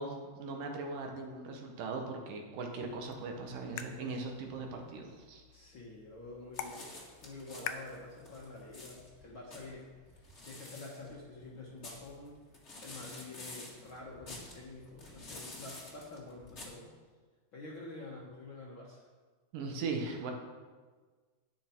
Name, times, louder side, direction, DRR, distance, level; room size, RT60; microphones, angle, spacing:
voice 1, 0.0-5.4 19.5-20.3, right 3 dB, 75° right, 3 dB, 2.8 m, -39 dB
sound 1, 2.9-8.9, left 8 dB, 85° left, 2.3 m, -47 dB
voice 2, 5.5-6.9 7.2-12.4 12.8-16.9 17.5-19.1, left 2 dB, 50° left, -4 dB, 1.6 m, -48 dB
sound 2, 6.5-16.6, left 2 dB, 30° left, 1.4 m, -50 dB
11.0 x 9.2 x 4.5 m, 1.4 s
omnidirectional pair, 4.0 m